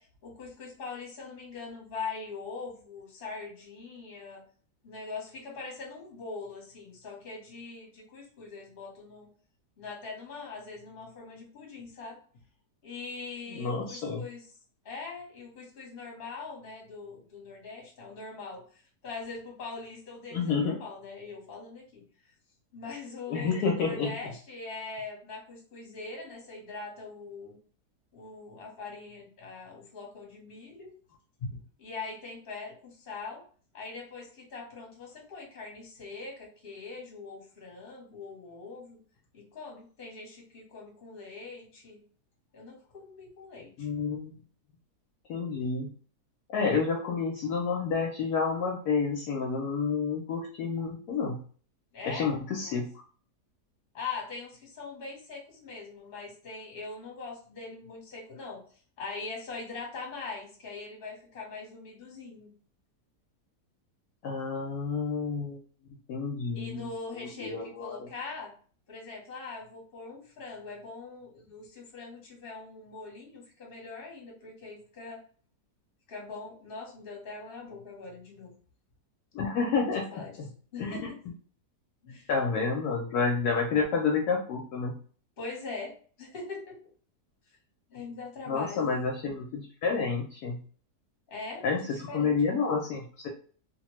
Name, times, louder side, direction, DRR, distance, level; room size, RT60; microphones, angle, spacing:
voice 1, 0.0-4.4 4.8-9.3 9.8-12.2 12.8-14.5 14.8-18.6 19.0-22.0 22.7-27.6 28.1-30.9 31.4-33.4 33.7-39.0 39.3-42.0 42.5-43.9 51.9-52.8 53.9-58.6 59.0-62.5 66.5-68.5 68.9-75.2 76.1-78.5 80.1-80.4 80.7-81.2 82.0-82.3 85.4-86.8 87.9-88.9 91.3-91.7 92.1-92.3, left 4 dB, 40° left, -2 dB, 1.0 m, -42 dB
voice 2, 13.5-14.2 20.3-20.8 23.3-24.1 43.8-44.4 45.3-45.9 46.5-51.4 52.1-52.9 64.2-65.6 66.1-66.9 67.1-68.1 79.3-80.0 80.4-80.5 80.8-81.0 82.3-84.9 88.5-90.6 91.6-93.3, left 5 dB, 75° left, 0 dB, 1.0 m, -29 dB
2.9 x 2.2 x 3.0 m, 0.42 s
omnidirectional pair, 1.8 m